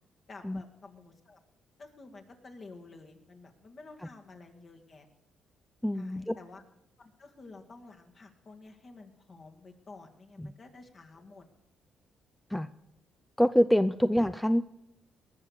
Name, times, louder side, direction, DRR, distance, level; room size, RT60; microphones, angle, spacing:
voice 1, 0.3-1.4 1.8-5.1 5.9-6.6 7.0-11.5, left 3 dB, 45° left, 3 dB, 2.1 m, -51 dB
voice 2, 5.8-6.4 10.4-10.5 12.5-12.7 13.4-14.6, equal, 5° left, 12 dB, 0.4 m, -25 dB
19.5 x 7.1 x 6.6 m, 0.82 s
cardioid pair, 90°, 0 cm